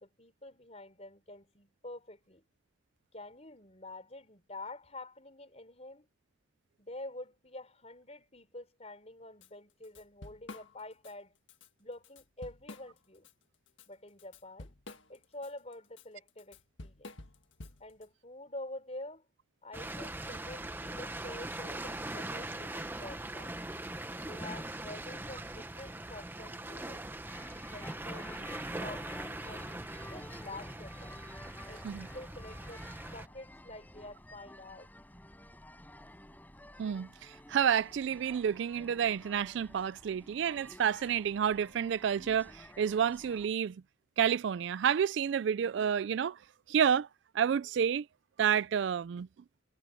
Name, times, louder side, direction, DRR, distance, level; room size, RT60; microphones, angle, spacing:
voice 1, 0.0-2.4 3.1-6.1 6.8-11.4 11.8-13.3 13.9-14.7 15.1-17.1 17.8-19.2 19.6-23.6 24.2-27.0 27.7-31.2 31.7-34.9, left 2 dB, 35° left, 4.6 m, -47 dB
Drum kit / Drum, 9.4-9.5 9.8-11.1 11.5-11.7 12.0-13.3 13.7-18.0, left 2 dB, 75° left, 1.6 m, -50 dB
sound 1, 19.7-33.3, right 1 dB, 10° right, 0.9 m, -41 dB
sound 2, 27.2-43.5, left 1 dB, 10° left, 6.4 m, -52 dB
voice 2, 36.8-43.8 44.2-46.4 46.7-47.1 47.3-48.1 48.4-49.3, right 8 dB, 65° right, 0.3 m, -30 dB
head